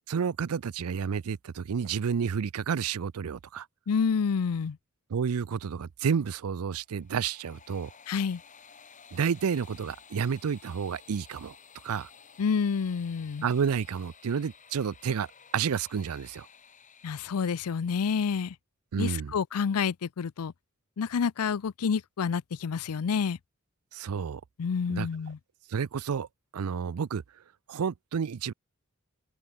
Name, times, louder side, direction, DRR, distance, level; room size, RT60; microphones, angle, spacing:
voice 1, 0.1-3.7 5.1-7.9 9.1-11.5 11.8-12.1 13.4-15.3 15.5-16.5 18.9-19.3 23.9-24.4 24.9-25.1 25.7-26.3 26.5-27.2 27.7-28.5, right 6 dB, 80° right, 0.5 m, -30 dB
voice 2, 3.9-4.8 8.1-8.4 12.4-13.4 17.0-18.5 19.0-20.5 21.0-23.4 24.6-25.4, left 6 dB, 90° left, 0.5 m, -28 dB
sound 1, 6.9-18.0, left 6 dB, 35° left, 7.9 m, -54 dB
open air
head